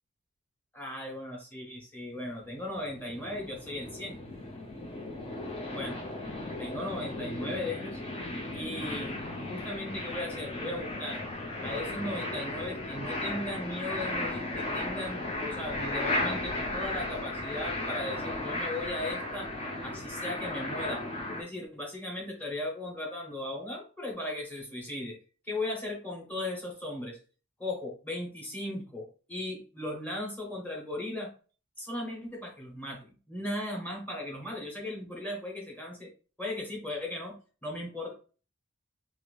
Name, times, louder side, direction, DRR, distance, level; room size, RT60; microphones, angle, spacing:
voice 1, 0.7-4.2 5.7-6.1 6.6-8.0 8.5-9.1 9.5-11.2 11.6-19.5 19.8-25.2 25.4-27.2 27.6-31.3 31.8-36.1 36.4-38.1, left 1 dB, 10° left, -2 dB, 1.0 m, -37 dB
sound 1, 2.5-21.4, left 2 dB, 30° left, 0.6 m, -35 dB
2.8 x 2.5 x 3.2 m, 0.37 s
head